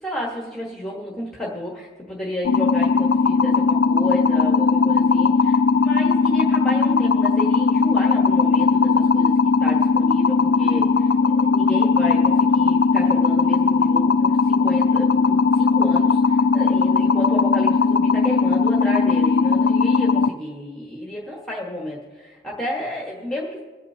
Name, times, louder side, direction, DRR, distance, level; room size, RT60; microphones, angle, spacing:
voice 1, 0.0-9.3 9.6-23.6, left 1 dB, 5° left, -3 dB, 1.3 m, -31 dB
sound 1, 2.4-20.3, left 4 dB, 70° left, 0.4 m, -18 dB
25.5 x 8.9 x 2.8 m, 1.3 s
head